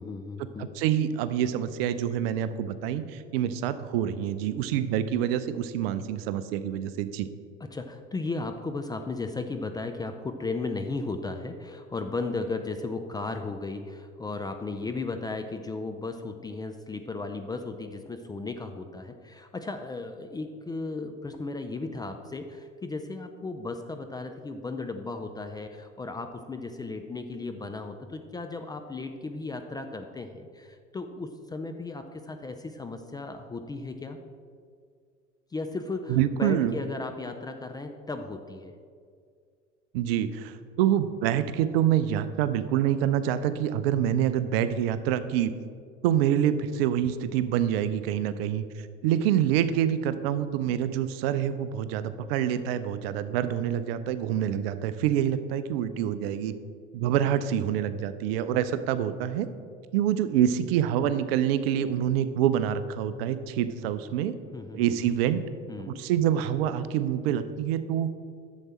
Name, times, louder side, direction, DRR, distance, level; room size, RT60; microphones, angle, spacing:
voice 1, 0.0-0.7 7.6-34.2 35.5-38.7 64.5-65.4 65.7-66.0, left 3 dB, 10° left, 6 dB, 0.5 m, -35 dB
voice 2, 0.6-7.3 36.1-36.7 39.9-45.5 46.0-56.5 56.9-59.5 59.9-64.3 64.7-65.4 65.8-68.1, right 10 dB, 55° right, 12 dB, 0.6 m, -26 dB
11.0 x 7.4 x 4.3 m, 2.2 s
figure-of-eight pair, 75°, 37 cm